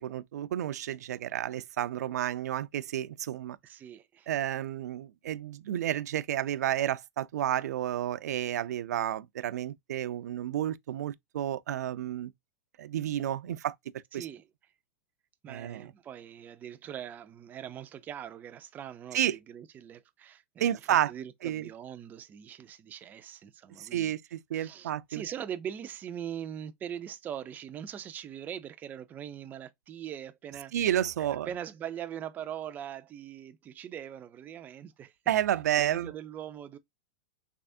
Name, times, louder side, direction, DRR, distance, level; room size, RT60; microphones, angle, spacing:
voice 1, 0.0-3.6 4.3-12.3 12.8-13.7 14.1-14.3 15.5-15.9 19.1-19.4 20.6-21.1 21.4-21.7 23.8-25.2 30.7-31.5 35.3-36.1, right 11 dB, 85° right, 0.4 m, -31 dB
voice 2, 3.6-4.3 14.1-14.5 15.4-24.1 24.5-30.7 31.2-35.1 35.8-36.8, right 9 dB, 20° right, 0.4 m, -41 dB
3.3 x 3.3 x 2.5 m
supercardioid pair, 140°, 9 cm